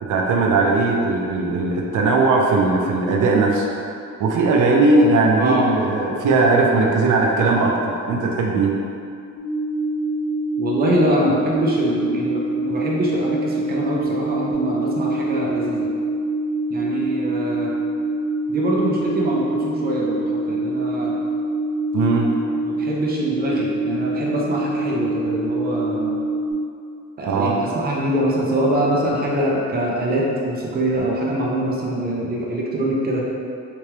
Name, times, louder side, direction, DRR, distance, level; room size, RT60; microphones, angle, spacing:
voice 1, 0.0-3.7 4.2-8.7 21.9-22.3 27.2-27.6, right 3 dB, 85° right, -1 dB, 0.5 m, -18 dB
voice 2, 5.4-5.7 10.6-15.9 16.7-17.7 18.5-21.2 22.6-26.2 27.2-33.3, right 1 dB, 30° right, -4 dB, 0.5 m, -24 dB
sound 1, 9.4-26.5, right 2 dB, 50° left, 0.7 m, -25 dB
3.4 x 3.2 x 2.9 m, 2.5 s
wide cardioid pair, 150°, 30 cm